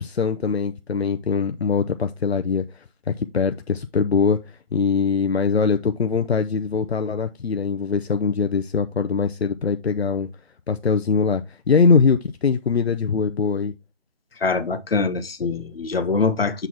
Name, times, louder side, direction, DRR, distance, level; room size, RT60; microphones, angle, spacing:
voice 1, 0.0-4.4 4.7-10.3 10.7-13.7, left 5 dB, 90° left, 0.7 m, -22 dB
voice 2, 14.4-16.7, left 4 dB, 70° left, 1.1 m, -23 dB
8.0 x 4.0 x 4.3 m
figure-of-eight pair, 170°, 31 cm